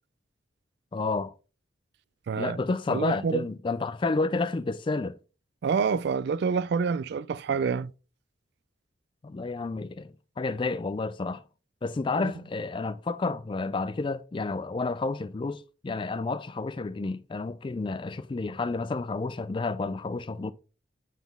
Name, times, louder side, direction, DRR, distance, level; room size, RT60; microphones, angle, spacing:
voice 1, 0.9-1.3 2.4-5.2 9.2-11.4 11.8-20.5, left 3 dB, 25° left, 0.3 m, -30 dB
voice 2, 2.3-2.6 2.9-3.4 5.6-7.9 12.2-12.3, right 5 dB, 60° right, 0.3 m, -27 dB
9.1 x 3.9 x 3.5 m
head